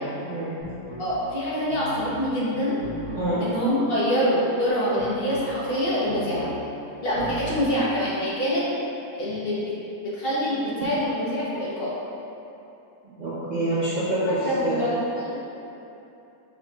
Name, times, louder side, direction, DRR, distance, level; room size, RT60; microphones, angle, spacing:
voice 1, 0.0-0.5 3.1-3.4 13.2-14.8, right 1 dB, 50° right, -12 dB, 0.5 m, -26 dB
sound 1, 0.6-1.1 1.7-2.2 2.8-3.3 5.0-5.5 6.1-6.6 7.1-7.7, left 1 dB, 85° left, 1.9 m, -38 dB
voice 2, 1.0-2.8 3.4-6.5 7.0-8.6 9.1-9.7 10.0-11.9 14.4-15.4, equal, 40° left, -8 dB, 0.9 m, -25 dB
4.6 x 4.4 x 2.3 m, 2.9 s
omnidirectional pair, 1.8 m